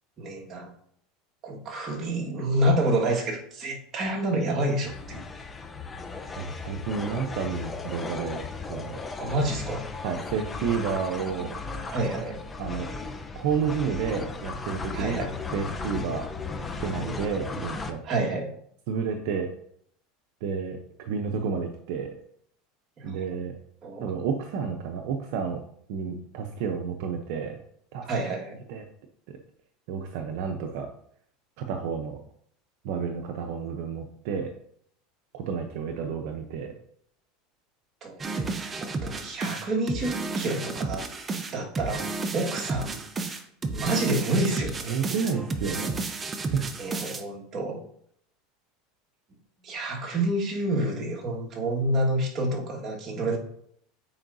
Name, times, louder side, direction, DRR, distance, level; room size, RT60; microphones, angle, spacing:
voice 1, 0.2-0.7 1.4-5.3 9.2-9.8 11.9-12.4 14.9-15.3 18.0-18.5 23.0-23.4 23.8-24.1 28.1-28.6 38.0-43.0 43.7-44.9 46.8-47.8 49.6-53.4, right 1 dB, 35° right, -1 dB, 1.7 m, -28 dB
sound 1, 4.9-17.9, left 4 dB, 20° left, 0.7 m, -36 dB
voice 2, 6.4-8.4 8.7-9.0 10.0-11.6 12.6-12.9 13.3-15.2 15.5-16.3 16.8-18.3 18.9-19.5 20.4-22.1 23.0-23.6 24.0-25.6 25.9-27.6 27.9-28.1 28.7-28.8 29.3-29.4 29.9-30.9 31.6-32.2 32.8-34.5 35.3-36.7 44.9-45.9 46.4-46.7, right 6 dB, 70° right, 4 dB, 0.7 m, -30 dB
sound 2, 38.2-47.2, right 3 dB, 20° right, 0.7 m, -32 dB
8.8 x 4.7 x 2.7 m, 0.67 s
supercardioid pair, 115°, 0 cm